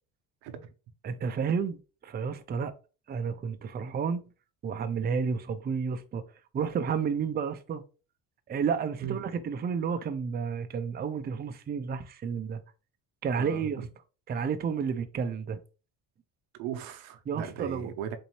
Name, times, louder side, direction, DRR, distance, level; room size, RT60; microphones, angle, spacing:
voice 1, 1.0-2.7 3.1-4.3 4.6-6.2 6.5-7.8 8.5-12.6 13.2-13.8 14.3-15.6 17.3-17.9, right 6 dB, 25° right, 0.5 m, -31 dB
voice 2, 16.5-18.2, right 9 dB, 90° right, 0.8 m, -37 dB
4.0 x 2.7 x 3.0 m
supercardioid pair, 90°, 39 cm